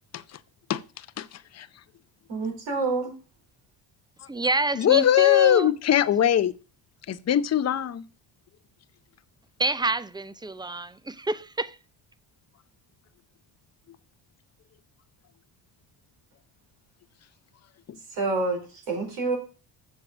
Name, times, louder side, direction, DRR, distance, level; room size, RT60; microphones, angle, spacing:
voice 1, 0.7-1.7 4.7-6.5 7.1-8.0, left 11 dB, 35° left, 0.6 m, -22 dB
voice 2, 2.3-3.1 18.1-19.4, right 3 dB, 80° right, 5.1 m, -28 dB
voice 3, 4.3-5.7 9.6-11.8, right 2 dB, 10° right, 0.5 m, -28 dB
7.7 x 6.5 x 7.2 m
cardioid pair, 95°, 48 cm